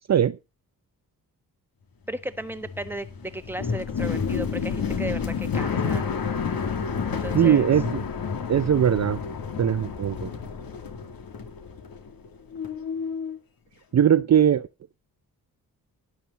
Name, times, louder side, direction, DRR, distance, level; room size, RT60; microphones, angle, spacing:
voice 1, 2.1-6.1 7.0-7.6, right 1 dB, 5° right, 1.3 m, -35 dB
sound 1, 2.2-12.3 12.5-13.4, left 6 dB, 70° left, 2.3 m, -30 dB
voice 2, 7.3-8.0 8.5-9.2 9.6-10.3 13.9-14.6, right 9 dB, 45° right, 0.6 m, -20 dB
12.5 x 9.9 x 4.1 m
cardioid pair, 85°, 37 cm